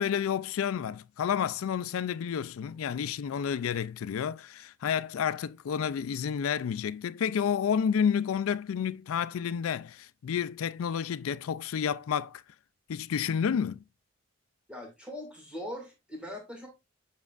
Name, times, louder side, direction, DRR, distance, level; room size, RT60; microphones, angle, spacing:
voice 1, 0.0-12.4 12.9-13.8, left 7 dB, 90° left, 0.4 m, -30 dB
voice 2, 14.7-16.7, left 1 dB, 5° right, 2.0 m, -41 dB
7.3 x 6.4 x 2.4 m
head